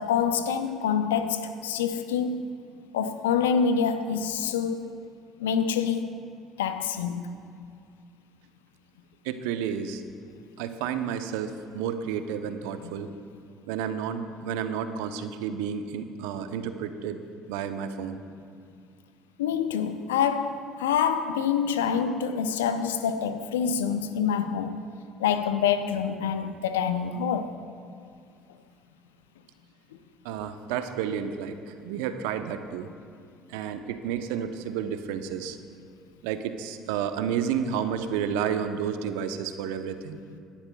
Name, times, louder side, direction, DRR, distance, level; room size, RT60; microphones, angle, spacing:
voice 1, 0.0-2.5 2.9-4.9 5.4-6.1 6.6-7.3 12.8-12.9 19.4-24.8 25.2-27.6, left 7 dB, 80° left, 0.6 m, -26 dB
voice 2, 9.2-10.1 10.6-13.1 13.7-17.2 17.5-18.2 30.2-32.9 33.5-35.6 36.2-40.2, right 8 dB, 70° right, 0.7 m, -31 dB
18.5 x 11.5 x 2.3 m
hypercardioid pair, 60°, 0 cm